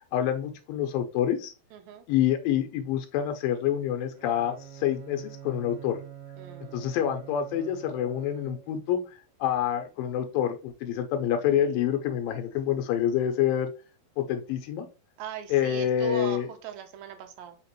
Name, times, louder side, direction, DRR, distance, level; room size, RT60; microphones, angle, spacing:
voice 1, 0.1-1.5 2.1-6.0 6.7-9.0 9.4-13.7 14.2-14.9 15.5-16.5, left 10 dB, 80° left, 6 dB, 2.3 m, -27 dB
voice 2, 1.7-2.0 6.4-6.8 15.2-17.6, right 10 dB, 85° right, 6 dB, 2.4 m, -39 dB
Bowed string instrument, 4.1-9.0, right 10 dB, 65° right, 1.8 m, -45 dB
5.9 x 2.9 x 3.0 m, 0.34 s
omnidirectional pair, 4.2 m